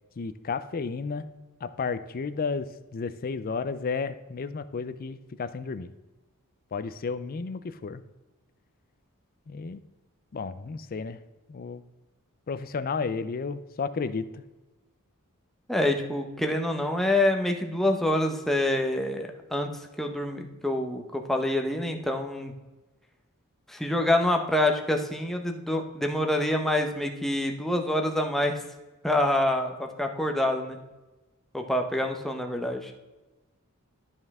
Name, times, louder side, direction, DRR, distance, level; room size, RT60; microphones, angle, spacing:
voice 1, 0.2-1.3 1.6-5.9 6.7-8.0 9.5-9.8 10.3-11.2 11.5-11.8 12.5-14.4, left 4 dB, 40° left, 12 dB, 0.4 m, -32 dB
voice 2, 15.7-19.7 20.0-22.5 23.7-28.6 29.0-30.8 31.5-32.9, left 1 dB, ahead, 3 dB, 0.8 m, -26 dB
11.5 x 5.4 x 3.6 m, 1.1 s
head